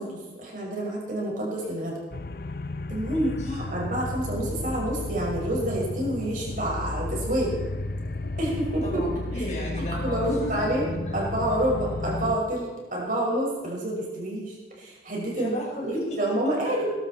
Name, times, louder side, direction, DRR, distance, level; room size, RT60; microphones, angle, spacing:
voice 1, 0.0-2.0 2.9-7.5 8.4-8.9 9.4-9.5 9.8-10.8 11.1-15.5 15.8-16.9, right 1 dB, 50° right, -3 dB, 5.9 m, -28 dB
sound 1, 2.1-12.4, left 2 dB, 55° left, 0.7 m, -33 dB
voice 2, 3.0-3.6 8.8-11.2 15.3-16.7, left 1 dB, 40° left, -2 dB, 4.9 m, -36 dB
21.5 x 12.5 x 4.4 m, 1.3 s
head